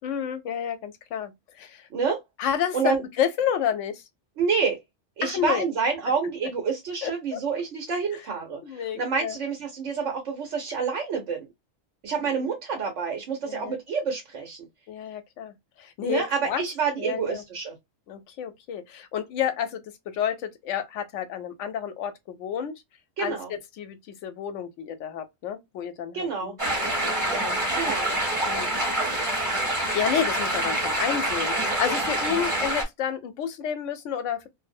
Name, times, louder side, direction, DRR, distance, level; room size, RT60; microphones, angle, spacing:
voice 1, 0.0-1.9 2.4-4.0 5.2-5.6 7.0-7.4 8.6-9.4 12.2-12.5 13.4-13.8 14.9-16.6 17.0-17.4 18.1-22.7 23.2-27.9 28.4-28.8 29.6-34.5, left 8 dB, 90° left, 0.9 m, -31 dB
voice 2, 4.4-4.8 5.2-11.4 12.0-14.6 16.0-17.7 23.2-23.5 26.1-26.5 27.7-28.1, right 5 dB, 80° right, 1.1 m, -28 dB
sound 1, 26.6-32.8, right 1 dB, 25° right, 1.2 m, -26 dB
2.5 x 2.0 x 2.5 m
omnidirectional pair, 1.2 m